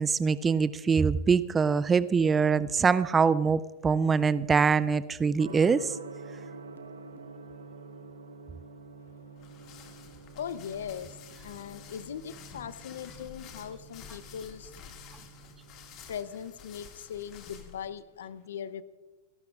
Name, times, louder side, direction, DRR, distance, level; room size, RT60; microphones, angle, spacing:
voice 1, 0.0-5.9, right 5 dB, 20° right, 16 dB, 0.4 m, -24 dB
Gong, 5.4-16.2, right 4 dB, 90° right, 0.9 m, -48 dB
sound 1, 9.4-17.9, left 8 dB, 45° left, 2.0 m, -50 dB
voice 2, 10.1-14.8 16.1-18.8, left 8 dB, 75° left, 16 dB, 0.6 m, -40 dB
29.0 x 11.5 x 2.4 m, 1.3 s
hypercardioid pair, 110°, 0 cm